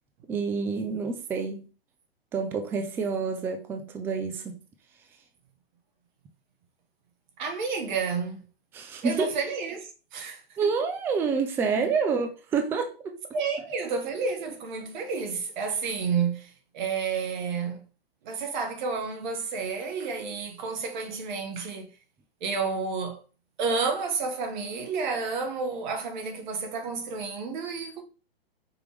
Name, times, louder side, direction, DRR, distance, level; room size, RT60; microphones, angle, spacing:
voice 1, 0.3-1.6 2.3-4.6 8.7-9.4 10.6-13.2, right 5 dB, 10° right, 0.3 m, -28 dB
voice 2, 7.4-8.4 9.0-10.7 11.7-11.9 13.3-17.8 18.2-21.9 22.4-23.2 23.6-28.0, right 5 dB, 50° right, 1.3 m, -30 dB
5.2 x 3.0 x 3.4 m
hypercardioid pair, 130°, 30 cm